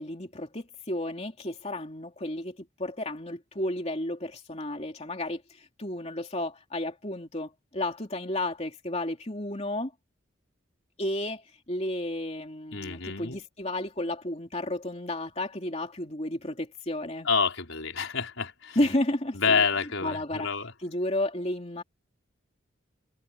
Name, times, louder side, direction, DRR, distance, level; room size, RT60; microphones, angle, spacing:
voice 1, 0.0-9.9 11.0-17.3 18.7-21.8, left 1 dB, 30° left, 3.1 m, -32 dB
voice 2, 12.7-13.4 17.3-18.8 19.3-20.7, left 5 dB, 75° left, 4.7 m, -28 dB
head